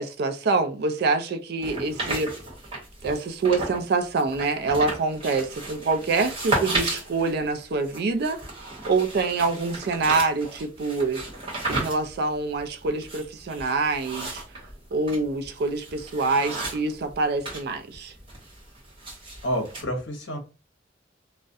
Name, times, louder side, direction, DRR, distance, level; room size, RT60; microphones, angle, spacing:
voice 1, 0.0-2.3 3.0-8.4 8.9-11.3 11.7-14.4 14.9-18.1, right 3 dB, 55° right, 0.3 m, -25 dB
sound 1, 1.6-3.8 4.2-17.6 17.9-19.8, right 2 dB, 30° right, 1.1 m, -34 dB
voice 2, 19.4-20.4, equal, 70° left, 0.8 m, -29 dB
2.3 x 2.1 x 2.6 m
head